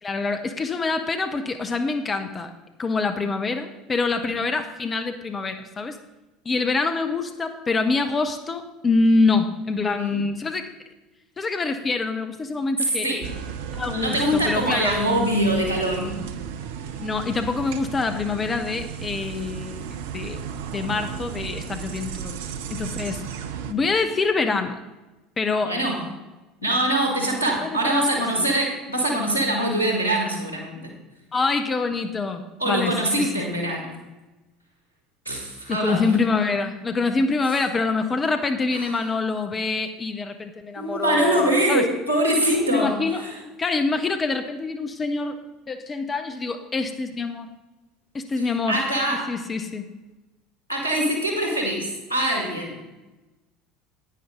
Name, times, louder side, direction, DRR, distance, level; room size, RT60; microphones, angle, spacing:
voice 1, 0.0-2.5 2.8-6.0 6.4-10.6 11.4-13.1 13.7-14.9 17.0-19.9 20.1-20.4 20.7-22.4 22.7-23.2 23.7-24.8 25.4-25.7 27.6-28.1 28.4-28.5 31.3-33.3 35.7-41.8 42.7-43.2 43.6-45.4 45.7-47.5 48.1-48.8 49.3-49.8, left 3 dB, 25° left, 7 dB, 0.8 m, -25 dB
sound 1, 13.2-23.7, right 7 dB, 65° right, 0.6 m, -34 dB
voice 2, 13.9-16.2 25.6-26.0 26.6-30.9 32.6-33.9 35.3-36.0 38.7-39.0 40.8-43.4 48.4-49.4 50.7-52.8, right 1 dB, 90° left, 1 dB, 1.9 m, -24 dB
10.0 x 9.3 x 3.7 m, 1.1 s
figure-of-eight pair, 65°, 0 cm